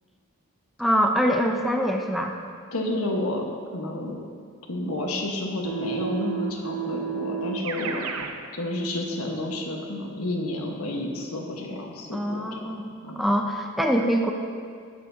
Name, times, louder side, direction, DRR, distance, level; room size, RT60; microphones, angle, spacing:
voice 1, 0.8-2.3 12.1-12.9 13.2-14.3, equal, ahead, 2 dB, 0.4 m, -24 dB
voice 2, 2.7-3.5 3.7-4.2 4.7-8.0 8.5-12.6 13.0-13.3, left 1 dB, 85° left, 0 dB, 1.3 m, -30 dB
Keyboard (musical), 5.6-8.4, right 7 dB, 85° right, 0.7 m, -31 dB
19.0 x 6.7 x 2.8 m, 2.2 s
head